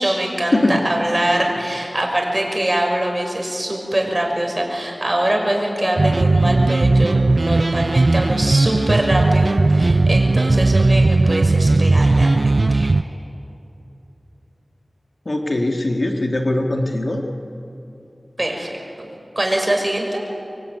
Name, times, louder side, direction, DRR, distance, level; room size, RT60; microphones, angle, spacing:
voice 1, 0.0-12.9 18.4-19.1 19.3-20.2, right 1 dB, 30° right, 1 dB, 6.3 m, -23 dB
sound 1, 6.0-13.0, right 2 dB, 65° right, 0.5 m, -16 dB
voice 2, 15.3-17.2, left 1 dB, 60° left, 2 dB, 2.3 m, -20 dB
24.5 x 24.0 x 9.6 m, 2.8 s
wide cardioid pair, 45°, 0 cm